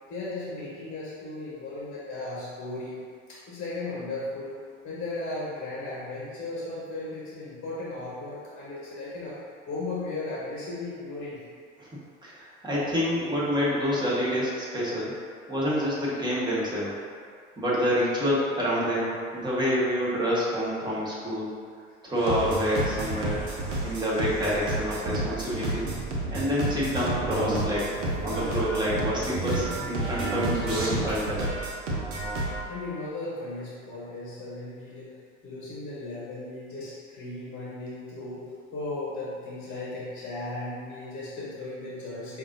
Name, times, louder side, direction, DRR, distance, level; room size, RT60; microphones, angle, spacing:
voice 1, 0.1-3.0 3.3-9.4 9.7-11.4 32.7-35.1 35.4-38.5 38.7-42.4, left 2 dB, 30° left, -7 dB, 1.1 m, -36 dB
voice 2, 12.2-15.1 15.5-16.9 17.6-21.5 22.0-23.4 23.8-25.9 26.3-27.9 28.2-31.4, equal, 10° right, -7 dB, 1.2 m, -27 dB
sound 1, 22.2-32.6, right 2 dB, 70° right, 1.0 m, -30 dB
5.2 x 2.7 x 2.6 m, 2.1 s
hypercardioid pair, 75°, 38 cm